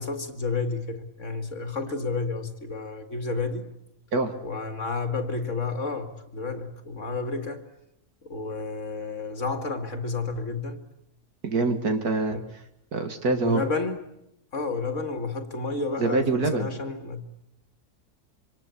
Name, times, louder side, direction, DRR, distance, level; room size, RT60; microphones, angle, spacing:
voice 1, 0.0-3.7 4.4-7.6 8.2-10.8 12.3-12.5 13.3-14.0 14.5-17.3, left 3 dB, 50° left, 2.3 m, -31 dB
voice 2, 11.4-12.4 12.9-13.6 16.0-16.7, right 3 dB, 70° right, 2.4 m, -25 dB
27.0 x 24.5 x 8.4 m
omnidirectional pair, 1.7 m